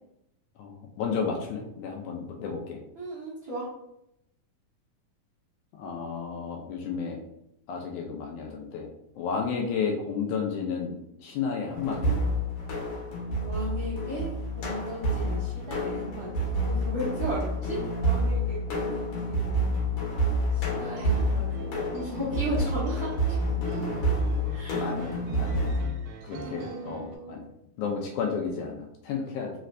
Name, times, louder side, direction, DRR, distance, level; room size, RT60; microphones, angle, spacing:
voice 1, 0.6-2.8 5.8-7.2 7.7-8.9 9.2-10.9 11.2-12.2 24.8-25.8 26.2-27.4 27.8-29.5, left 5 dB, 80° left, 1 dB, 1.9 m, -32 dB
voice 2, 2.9-3.7 12.7-12.9 13.4-19.7 20.5-23.4 23.7-23.8 24.5-24.9 26.4-27.4, equal, 75° right, -8 dB, 1.1 m, -36 dB
sound 1, 11.7-25.8, equal, 65° left, 2.0 m, -28 dB
sound 2, 20.5-27.2, right 5 dB, 90° right, 2.2 m, -43 dB
4.9 x 3.2 x 2.5 m, 0.81 s
omnidirectional pair, 3.8 m